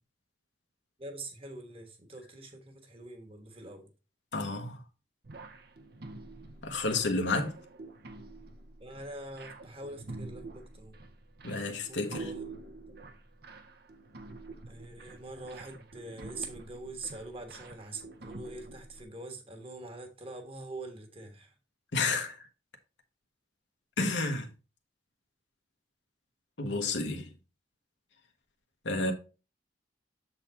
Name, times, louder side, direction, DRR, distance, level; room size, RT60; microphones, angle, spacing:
voice 1, 1.0-3.9 8.8-11.0 11.9-12.5 14.7-21.5, right 2 dB, 30° right, 1.3 m, -44 dB
voice 2, 4.3-4.8 6.6-7.6 11.4-12.3 21.9-22.4 24.0-24.5 26.6-27.3 28.8-29.1, left 3 dB, 85° left, 1.1 m, -30 dB
sound 1, 5.2-19.0, right 3 dB, 60° right, 0.8 m, -47 dB
7.1 x 4.1 x 4.3 m
head